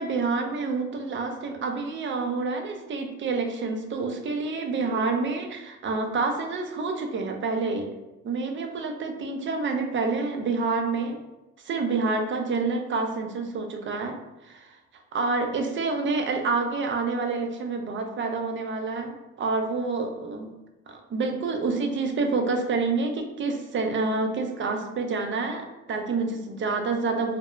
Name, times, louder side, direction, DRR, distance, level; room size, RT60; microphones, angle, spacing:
voice 1, 0.0-7.9 8.2-11.2 11.6-14.2 14.4-14.8 15.1-20.5 20.9-27.4, right 3 dB, 40° right, 4 dB, 0.4 m, -28 dB
2.2 x 2.1 x 3.0 m, 0.99 s
cardioid pair, 90°, 30 cm